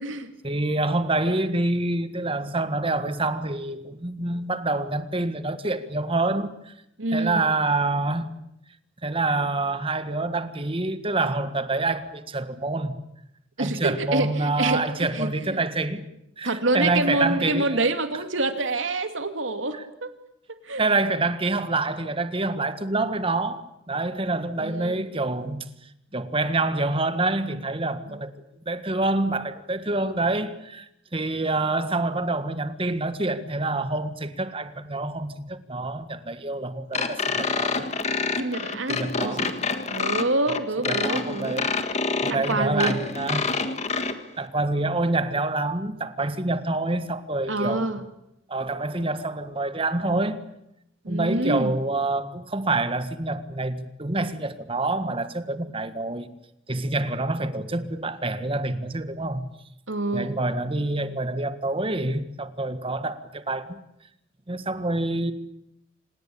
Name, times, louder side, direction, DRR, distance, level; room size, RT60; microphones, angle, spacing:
voice 1, 0.4-6.7 7.1-8.3 9.0-12.9 13.6-16.0 16.4-17.8 19.7-19.8 20.8-23.6 23.9-25.6 26.1-28.3 28.6-37.9 38.9-39.5 40.8-41.7 42.2-43.5 44.4-47.9 48.5-50.4 51.1-56.3 56.7-59.5 60.1-63.8 64.5-65.3, right 2 dB, 30° right, 1.6 m, -27 dB
voice 2, 7.0-7.4 13.6-15.6 16.4-20.1 20.6-20.8 24.6-25.1 28.1-28.2 38.4-39.5 39.9-41.7 42.3-43.0 47.5-48.1 51.0-51.7 59.9-60.4, right 2 dB, 90° right, 2.5 m, -27 dB
sound 1, 36.9-44.1, left 4 dB, 35° left, 1.7 m, -27 dB
26.5 x 19.5 x 8.7 m
head